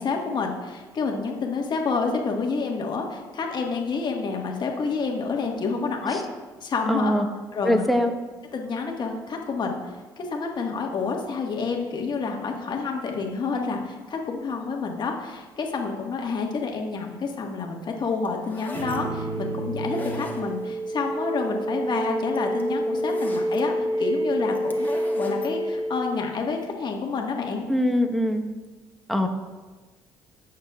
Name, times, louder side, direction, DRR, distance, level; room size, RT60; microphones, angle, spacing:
voice 1, 0.0-6.2 6.6-7.2 7.5-7.9 8.5-9.8 10.2-27.7, left 4 dB, 45° left, 1 dB, 1.6 m, -28 dB
voice 2, 6.9-7.3 7.6-8.1 27.7-28.4 29.1-29.3, equal, ahead, 3 dB, 1.2 m, -22 dB
sound 1, 18.3-19.0 19.8-20.8 22.0-22.1 22.3-23.6 24.5-25.5, left 2 dB, 15° left, 1.5 m, -40 dB
sound 2, 18.7-26.7, right 1 dB, 55° right, 1.9 m, -28 dB
15.0 x 6.5 x 2.4 m, 1.3 s
hypercardioid pair, 60°, 10 cm